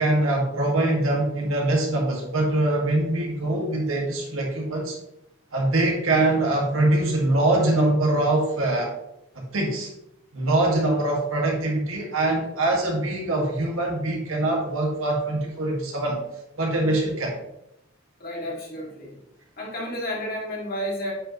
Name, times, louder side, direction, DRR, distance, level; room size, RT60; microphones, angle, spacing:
voice 1, 0.0-5.0 5.5-8.9 9.3-9.9 10.3-16.2 16.6-17.3, right 2 dB, 80° right, -1 dB, 1.9 m, -23 dB
voice 2, 18.2-19.2 19.6-21.1, equal, 45° left, -3 dB, 2.1 m, -31 dB
8.5 x 5.1 x 3.0 m, 0.83 s
head